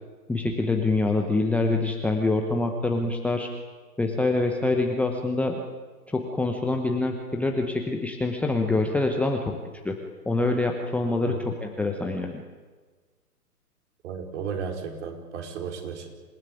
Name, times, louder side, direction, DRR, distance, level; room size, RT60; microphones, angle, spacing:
voice 1, 0.3-3.5 4.0-5.6 6.1-9.5 9.8-9.9 10.3-12.4, left 2 dB, 5° left, 2 dB, 0.9 m, -25 dB
voice 2, 14.0-16.1, right 6 dB, 45° right, 3 dB, 4.8 m, -34 dB
27.0 x 17.0 x 9.2 m, 1.4 s
hypercardioid pair, 130°, 48 cm